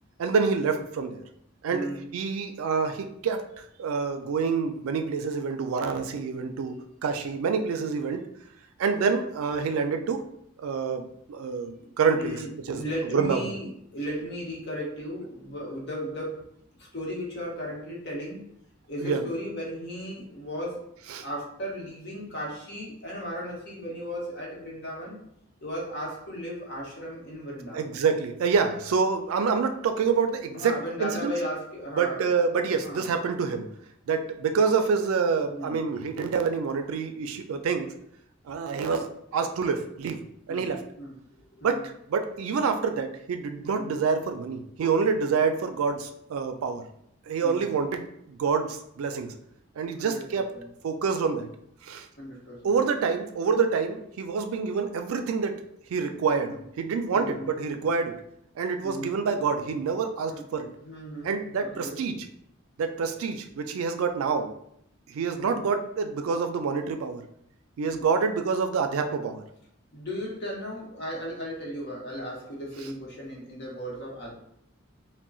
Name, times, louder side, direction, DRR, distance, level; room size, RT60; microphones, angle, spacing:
voice 1, 0.2-1.2 1.6-1.9 2.1-8.3 8.8-10.2 10.6-12.4 12.7-12.8 13.1-13.4 19.0-19.3 21.1-21.2 27.7-31.3 32.0-33.7 34.1-37.9 38.5-40.2 40.5-40.8 41.6-46.9 47.3-49.3 49.8-50.5 50.8-51.5 51.8-52.1 52.6-55.6 55.9-58.2 58.6-60.7 61.2-62.2 62.8-64.5 65.1-67.2 67.8-69.4, right 5 dB, 90° right, 7 dB, 0.3 m, -27 dB
voice 2, 1.7-2.0 11.8-16.4 16.8-18.5 18.9-20.8 21.2-25.2 25.6-28.0 30.5-32.5 32.8-33.1 35.5-35.9 40.5-40.7 41.0-41.2 41.6-41.9 43.7-44.0 47.4-47.7 49.9-50.7 52.2-52.8 56.5-56.6 57.1-57.5 58.8-59.2 60.3-60.4 60.8-61.3 61.6-62.0 65.4-65.6 67.8-68.1 69.9-74.3, equal, 55° left, -3 dB, 0.9 m, -36 dB
3.7 x 2.1 x 2.3 m, 0.73 s
head